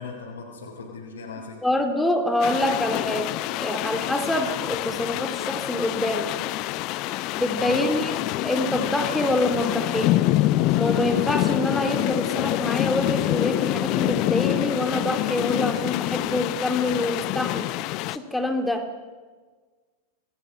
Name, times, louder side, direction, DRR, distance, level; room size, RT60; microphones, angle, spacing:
voice 1, 0.0-1.6 7.4-7.9, left 5 dB, 70° left, -4 dB, 4.1 m, -38 dB
voice 2, 1.6-6.3 7.3-10.2 10.7-17.7 18.1-18.9, left 1 dB, 5° left, 5 dB, 2.4 m, -26 dB
sound 1, 2.4-18.2, left 16 dB, 40° left, 0.6 m, -26 dB
27.0 x 19.0 x 5.6 m, 1.4 s
figure-of-eight pair, 90°, 0 cm